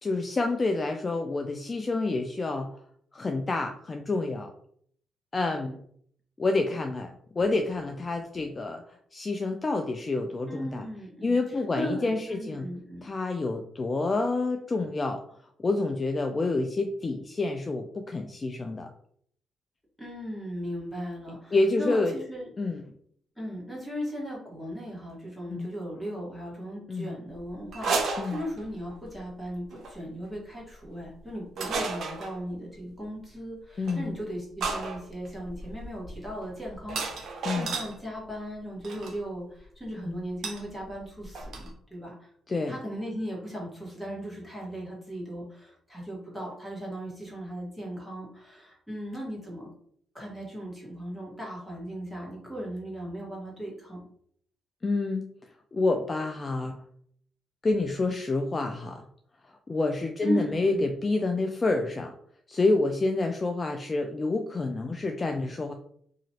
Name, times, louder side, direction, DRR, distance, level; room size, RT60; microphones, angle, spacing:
voice 1, 0.0-2.7 3.1-4.5 5.3-5.8 6.4-8.8 9.1-10.9 11.2-12.6 13.0-15.2 15.6-18.9 21.5-22.1 22.6-22.8 25.5-25.7 26.9-27.1 28.2-28.4 33.8-34.1 37.4-37.7 40.0-40.3 42.5-42.7 54.8-55.2 55.7-56.8 57.6-59.0 59.4-62.1 62.5-65.7, left 3 dB, 30° left, 5 dB, 0.3 m, -28 dB
voice 2, 10.5-13.0 20.0-22.5 23.4-42.3 42.7-49.7 50.1-54.0 60.2-60.8, equal, ahead, -5 dB, 1.4 m, -37 dB
sound 1, 27.7-28.9 29.7-29.9 31.6-32.4 33.9-34.0 34.6-37.9 38.8-39.1 40.4-40.6 40.9-41.0 41.2-41.7, right 4 dB, 65° right, 0.6 m, -32 dB
2.9 x 2.4 x 2.8 m, 0.65 s
cardioid pair, 90°, 0 cm